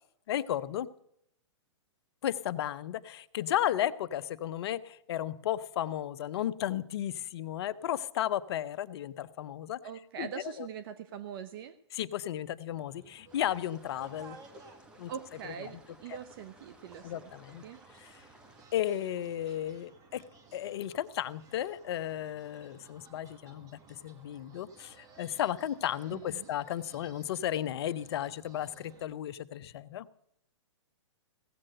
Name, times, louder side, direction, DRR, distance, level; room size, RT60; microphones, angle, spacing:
voice 1, 0.3-0.9 2.2-9.8 10.2-10.3 10.6-10.7 11.9-14.4 15.0-15.1 15.7-15.8 16.1-16.2 17.0-17.6 18.0-18.1 18.7-20.2 20.5-30.1, left 11 dB, 55° left, 14 dB, 0.7 m, -34 dB
voice 2, 9.8-11.7 15.1-17.3 17.6-17.8 26.1-26.5, right 8 dB, 50° right, 12 dB, 0.7 m, -42 dB
sound 1, 12.7-29.0, right 4 dB, 20° right, 1.7 m, -57 dB
sound 2, 13.3-18.7, right 1 dB, 5° right, 1.1 m, -58 dB
16.0 x 7.6 x 7.7 m, 0.75 s
hypercardioid pair, 140°, 16 cm